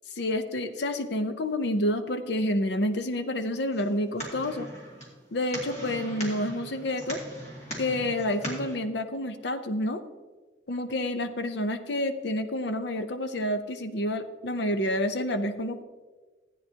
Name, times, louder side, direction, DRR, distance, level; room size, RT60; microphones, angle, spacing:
voice 1, 0.1-4.7 5.3-7.2 7.8-10.0 10.7-15.8, left 1 dB, 65° left, 9 dB, 0.7 m, -29 dB
sound 1, 3.7-8.7, right 1 dB, 35° left, 2.4 m, -40 dB
14.5 x 9.1 x 2.8 m, 1.3 s
head